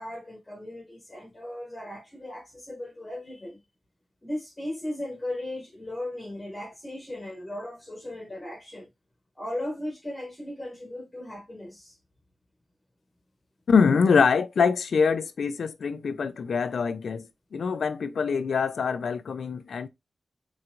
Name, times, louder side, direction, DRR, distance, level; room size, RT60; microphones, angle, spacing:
voice 1, 0.0-3.6 4.2-8.9 9.3-12.0, left 1 dB, 25° left, 1.8 m, -37 dB
voice 2, 13.7-19.9, left 5 dB, 80° left, 0.4 m, -24 dB
4.4 x 3.9 x 2.4 m
wide cardioid pair, 90°, 0 cm